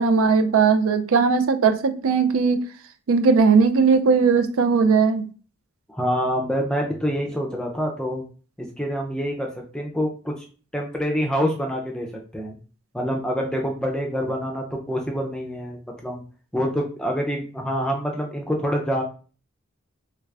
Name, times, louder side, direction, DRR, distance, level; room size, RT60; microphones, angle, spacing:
voice 1, 0.0-2.6 3.1-5.3, right 5 dB, 65° right, 9 dB, 0.4 m, -18 dB
voice 2, 5.9-8.2 8.6-10.4 10.7-12.6 12.9-16.2 16.5-19.0, equal, 5° left, 0 dB, 0.5 m, -26 dB
3.2 x 2.4 x 3.3 m, 0.38 s
head